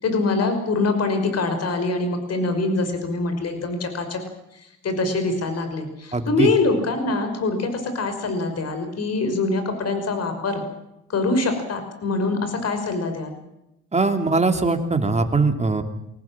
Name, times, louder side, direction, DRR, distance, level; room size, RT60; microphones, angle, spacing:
voice 1, 0.0-4.2 4.5-10.6 11.1-13.4, left 3 dB, 55° left, 7 dB, 5.6 m, -24 dB
voice 2, 6.1-6.5 13.9-15.8, right 3 dB, 20° right, 6 dB, 3.0 m, -21 dB
24.5 x 18.0 x 7.5 m, 0.86 s
cardioid pair, 90°, 30 cm